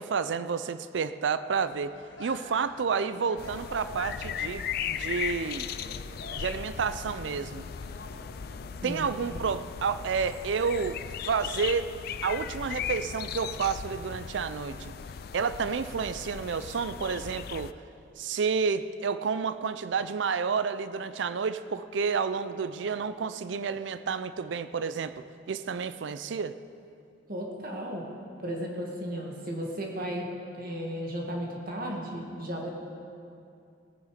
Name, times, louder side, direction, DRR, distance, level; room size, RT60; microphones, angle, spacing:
voice 1, 0.0-1.9 2.2-5.7 6.3-7.6 8.8-11.9 12.2-14.9 15.3-17.7 18.2-26.5, right 5 dB, 80° right, 13 dB, 0.4 m, -30 dB
sound 1, 1.5-8.9, left 1 dB, 75° left, 1.8 m, -49 dB
sound 2, 3.4-17.7, left 8 dB, 55° left, 0.4 m, -37 dB
voice 2, 27.3-28.1 28.4-32.7, equal, 55° right, 0 dB, 2.0 m, -35 dB
18.0 x 9.5 x 5.0 m, 2.5 s
head